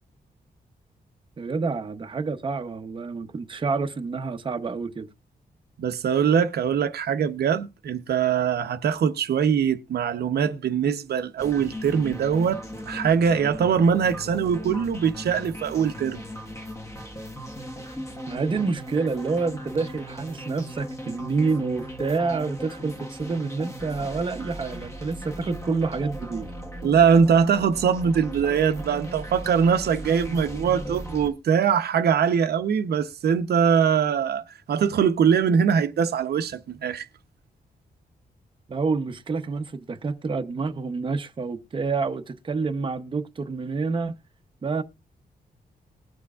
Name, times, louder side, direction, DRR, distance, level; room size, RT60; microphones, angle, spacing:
voice 1, 1.4-5.1 18.3-26.5 38.7-44.1 44.6-44.8, right 4 dB, 30° right, 0.8 m, -28 dB
voice 2, 5.8-12.6 12.9-16.2 26.8-37.1, right 7 dB, 85° right, 0.8 m, -22 dB
sound 1, 11.4-31.3, equal, 20° left, 1.4 m, -38 dB
20.5 x 6.9 x 2.4 m
wide cardioid pair, 150°, 16 cm